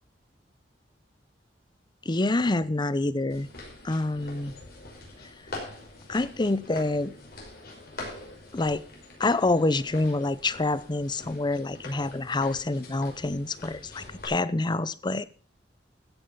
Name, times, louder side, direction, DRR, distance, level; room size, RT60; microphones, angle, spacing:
voice 1, 2.1-3.5 3.8-4.5 6.1-7.1 8.5-8.8 9.2-15.2, left 2 dB, 25° left, 17 dB, 0.7 m, -27 dB
sound 1, 3.3-14.3, left 2 dB, 60° left, 5.7 m, -44 dB
14.5 x 9.0 x 5.6 m, 0.41 s
head